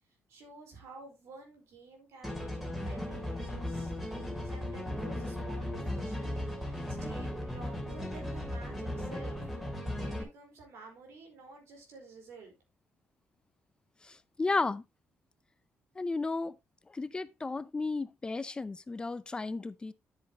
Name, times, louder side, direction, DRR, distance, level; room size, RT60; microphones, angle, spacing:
voice 1, 0.3-3.9 4.4-9.4 10.0-12.5, right 3 dB, 80° right, 4.5 m, -51 dB
sound 1, 2.2-10.2, left 1 dB, 5° right, 2.8 m, -36 dB
voice 2, 14.0-14.8 16.0-16.6 16.9-19.9, left 3 dB, 20° left, 0.5 m, -33 dB
10.0 x 7.8 x 3.0 m
cardioid pair, 130°, 5 cm